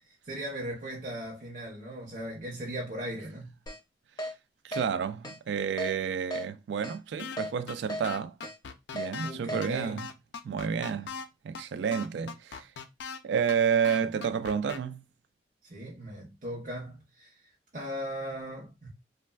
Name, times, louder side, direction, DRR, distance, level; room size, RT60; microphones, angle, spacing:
voice 1, 0.1-3.6 9.2-10.1 15.6-18.9, equal, 45° right, 0.7 m, -38 dB
Keyboard (musical), 3.7-3.8 4.2-4.3 4.7-4.9 5.2-5.4 5.8-5.9 6.3-6.4 6.8-7.0 7.4-7.5 7.9-8.0 8.4-8.6 9.0-9.1 9.5-9.6, equal, 25° left, 0.4 m, -35 dB
voice 2, 4.6-8.4 8.9-10.0 10.4-11.2 11.4-12.7 13.2-15.0, right 7 dB, 90° right, 0.3 m, -30 dB
sound 1, 7.2-7.4 7.7-7.8 8.0-9.3 9.6-9.7 10.0-11.3 11.6-11.7 11.9-13.2 13.5-13.6 13.8-14.8, left 5 dB, 85° left, 0.4 m, -39 dB
3.2 x 2.1 x 2.2 m
head